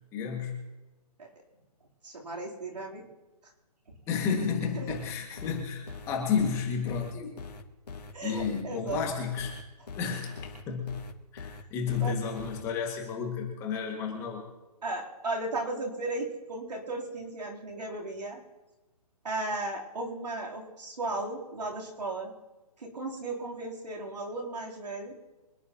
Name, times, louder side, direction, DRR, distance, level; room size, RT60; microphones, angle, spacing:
voice 1, 0.1-0.6 4.1-7.3 8.2-9.6 10.0-10.3 10.7-11.0 11.3-14.5, left 6 dB, 15° left, 0 dB, 2.1 m, -31 dB
voice 2, 2.0-3.0 4.8-4.9 8.1-9.0 12.0-12.2 14.8-18.4 19.2-22.3 22.8-25.1, right 2 dB, 85° right, -2 dB, 3.8 m, -35 dB
sound 1, 4.9-12.6, left 4 dB, 80° left, 2.1 m, -43 dB
25.5 x 10.5 x 3.0 m, 1.1 s
hypercardioid pair, 165°, 20 cm